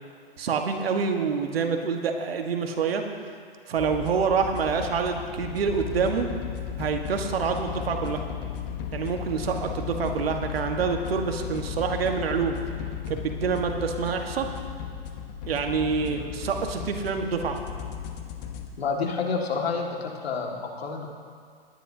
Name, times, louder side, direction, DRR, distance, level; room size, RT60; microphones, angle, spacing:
voice 1, 0.4-3.0 3.7-6.3 6.8-8.2 8.9-12.6 13.1-14.5 15.5-17.6, right 5 dB, 70° right, 4 dB, 1.5 m, -27 dB
sound 1, 3.8-18.7, left 8 dB, 40° left, 1.1 m, -35 dB
voice 2, 18.8-21.1, left 5 dB, 75° left, 1 dB, 1.9 m, -29 dB
19.5 x 10.5 x 2.8 m, 2.1 s
hypercardioid pair, 130°, 31 cm